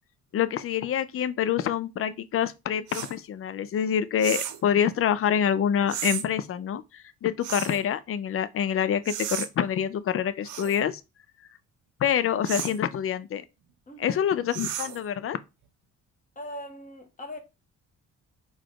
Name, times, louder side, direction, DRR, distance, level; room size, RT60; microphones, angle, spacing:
voice 1, 0.3-11.0 12.0-13.4 14.0-15.4, left 9 dB, 50° left, 0.5 m, -26 dB
sound 1, 2.9-3.1 4.2-4.7 5.9-6.3 7.4-7.8 9.0-9.5 10.4-10.8 12.4-12.8 14.5-15.1, right 10 dB, 80° right, 0.7 m, -33 dB
voice 2, 13.9-14.3 16.3-17.4, left 1 dB, 25° left, 1.2 m, -40 dB
4.0 x 2.4 x 4.7 m
cardioid pair, 90°, 30 cm